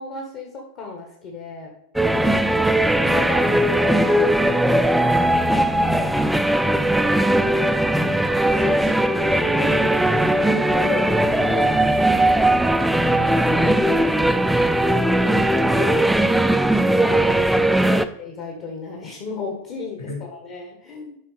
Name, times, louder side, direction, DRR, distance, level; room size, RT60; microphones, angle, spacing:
voice 1, 0.0-1.7 3.0-6.1 8.0-12.8 13.2-14.1 17.0-21.2, left 4 dB, 40° left, 1 dB, 1.4 m, -34 dB
sound 1, 2.0-18.1, right 1 dB, 5° right, 0.4 m, -19 dB
voice 2, 2.2-2.6 3.4-3.5 6.5-8.2 15.2-17.1 17.9-18.1 20.1-20.3, left 2 dB, 65° left, 1 dB, 1.9 m, -38 dB
12.5 x 5.3 x 3.4 m, 0.77 s
figure-of-eight pair, 90°, 0 cm